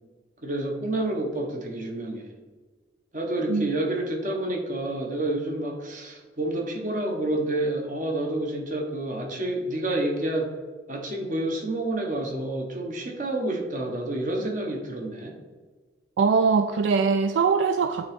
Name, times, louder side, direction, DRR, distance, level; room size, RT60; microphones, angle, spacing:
voice 1, 0.4-2.3 3.1-10.5 10.9-15.4, right 1 dB, 45° right, 1 dB, 1.1 m, -29 dB
voice 2, 16.2-18.1, right 5 dB, 75° right, 8 dB, 0.3 m, -22 dB
8.6 x 3.8 x 3.6 m, 1.4 s
head